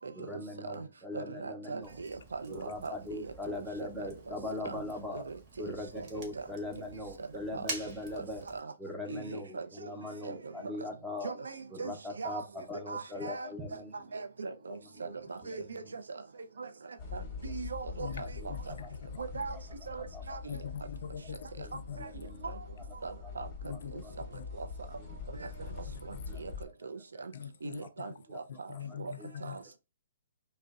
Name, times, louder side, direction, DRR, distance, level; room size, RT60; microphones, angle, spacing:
voice 1, 0.1-2.0 2.5-8.5 8.8-11.4 11.7-14.2 14.7-16.0 17.0-17.6 18.0-20.7 21.5-24.1 25.0-25.9 26.2-27.4 27.8-28.4 28.9-29.8, left 2 dB, 5° right, 0.6 m, -43 dB
voice 2, 1.1-2.9 3.2-3.3 4.0-4.1 4.6-4.8 5.1-5.3 6.2-6.3 7.5-7.7 8.1-8.2 8.5-8.6 9.1-9.7 10.2-10.4 11.2-11.9 12.2-12.4 12.9-13.5 14.1-14.8 15.0-16.0 16.6-16.7 17.1-18.3 19.2-19.6 19.9-20.6 23.0-23.5 24.6-24.7 25.4-25.5 26.4-26.5 26.8-27.0 27.6-28.1 29.0-29.1 29.4-29.5, right 4 dB, 85° right, 0.4 m, -39 dB
Fire, 1.8-8.6, right 3 dB, 35° right, 0.9 m, -47 dB
sound 1, 17.0-26.7, left 5 dB, 30° left, 0.8 m, -44 dB
voice 3, 18.0-19.0 19.3-19.4 20.5-22.0 23.6-24.4 25.9-26.3 26.5-26.6 27.3-27.8 28.5-29.6, left 8 dB, 65° left, 0.3 m, -43 dB
2.6 x 2.1 x 2.3 m
hypercardioid pair, 140°, 0 cm